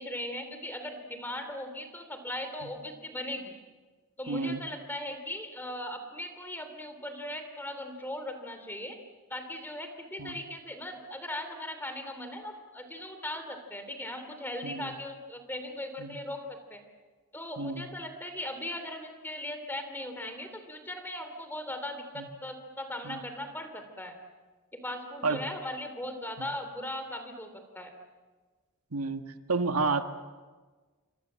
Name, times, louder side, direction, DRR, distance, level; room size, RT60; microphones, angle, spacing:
voice 1, 0.0-3.5 4.2-9.0 9.3-16.8 17.3-24.2 24.7-27.5 27.7-27.9, left 1 dB, 10° left, 7 dB, 3.1 m, -38 dB
voice 2, 4.3-4.6 10.2-10.4 14.6-14.9 16.0-16.2 17.6-17.9 22.2-22.3 23.0-23.2 25.2-25.4 26.4-26.5 28.9-29.2 29.5-30.0, right 4 dB, 90° right, 7 dB, 1.6 m, -30 dB
28.5 x 25.0 x 7.5 m, 1.4 s
head